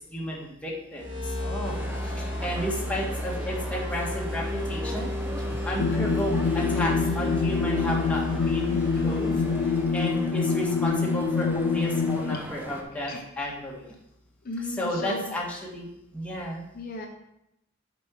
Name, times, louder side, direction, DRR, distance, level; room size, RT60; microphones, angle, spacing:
voice 1, 0.1-1.1 1.4-5.1 5.6-9.4 9.9-13.8 14.8-15.9 16.1-16.6, equal, 5° left, -4 dB, 1.6 m, -32 dB
sound 1, 0.9-10.4, equal, 85° right, 2.8 m, -33 dB
sound 2, 1.6-12.8, equal, 10° right, 0.8 m, -40 dB
sound 3, 5.8-12.4, left 5 dB, 65° left, 0.4 m, -26 dB
voice 2, 14.4-15.2 16.7-17.1, left 2 dB, 45° left, 2 dB, 0.7 m, -35 dB
7.5 x 5.3 x 4.6 m, 0.83 s
head